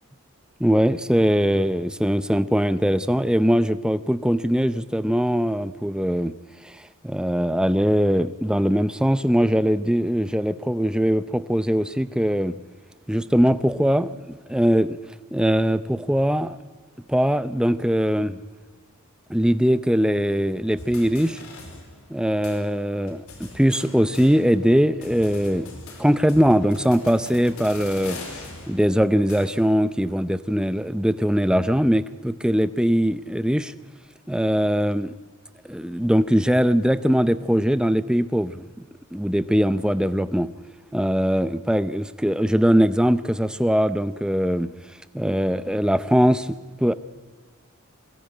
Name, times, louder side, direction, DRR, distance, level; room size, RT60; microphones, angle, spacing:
voice 1, 0.6-6.3 6.6-12.6 13.1-15.0 15.3-16.6 17.1-18.4 19.3-21.4 22.1-25.7 26.0-28.2 28.7-33.7 34.3-35.1 35.6-38.8 39.1-40.5 40.9-44.7 45.1-46.9, equal, 5° right, 13 dB, 0.6 m, -21 dB
sound 1, 20.8-22.2 22.4-22.6 23.1-24.7 25.0-29.8, left 2 dB, 75° left, 4.8 m, -41 dB
22.5 x 17.5 x 9.0 m, 1.4 s
head